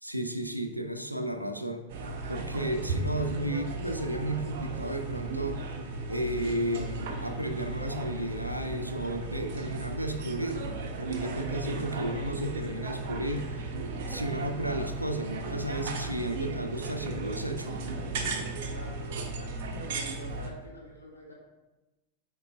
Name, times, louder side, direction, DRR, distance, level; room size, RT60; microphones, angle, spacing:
voice 1, 0.0-1.9 2.3-5.7 6.1-13.5 14.1-17.8, right 1 dB, 85° right, 7 dB, 0.6 m, -33 dB
sound 1, 1.9-20.5, right 3 dB, 50° right, 0.9 m, -35 dB
voice 2, 18.6-19.0 19.3-21.3, left 1 dB, 80° left, -3 dB, 1.8 m, -47 dB
8.0 x 4.9 x 3.5 m, 1.1 s
figure-of-eight pair, 90°, 0 cm